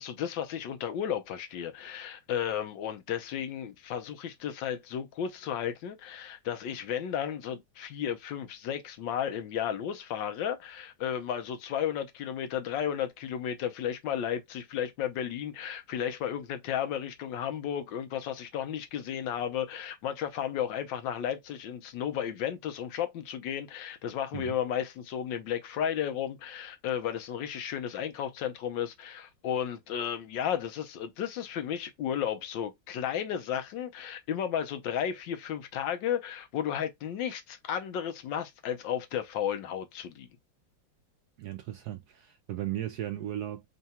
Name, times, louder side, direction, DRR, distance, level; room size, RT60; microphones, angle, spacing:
voice 1, 0.0-40.3, left 9 dB, 75° left, 1.4 m, -33 dB
voice 2, 41.4-43.6, right 13 dB, 75° right, 0.9 m, -36 dB
3.8 x 2.3 x 4.1 m
omnidirectional pair, 2.1 m